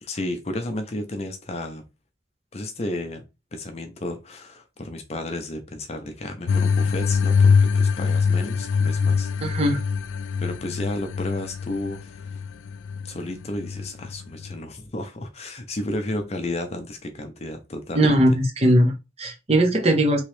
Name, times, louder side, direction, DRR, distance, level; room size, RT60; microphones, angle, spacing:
voice 1, 0.0-1.8 2.5-3.2 3.5-9.6 10.4-12.3 13.0-18.2, left 1 dB, 35° left, 0.5 m, -32 dB
sound 1, 6.5-14.5, left 5 dB, 90° left, 0.3 m, -23 dB
voice 2, 9.4-9.8 17.9-20.2, right 1 dB, 35° right, 0.7 m, -19 dB
3.0 x 2.9 x 3.1 m
head